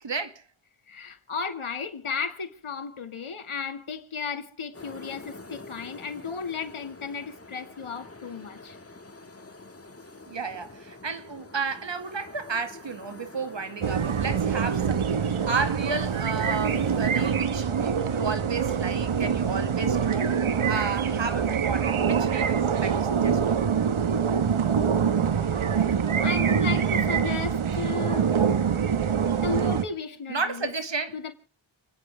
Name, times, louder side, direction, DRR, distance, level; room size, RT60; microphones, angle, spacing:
voice 1, 0.0-0.4 10.3-15.2 15.4-20.3 20.7-23.6 30.3-31.2, right 4 dB, 65° right, 2.1 m, -32 dB
voice 2, 0.9-8.8 25.4-25.7 26.2-28.4 29.4-30.7 31.1-31.3, left 5 dB, 85° left, 2.1 m, -34 dB
sound 1, 4.7-17.3, left 2 dB, 30° left, 1.9 m, -46 dB
sound 2, 13.8-29.8, right 7 dB, 85° right, 1.2 m, -25 dB
29.5 x 10.0 x 3.4 m
wide cardioid pair, 75°, 48 cm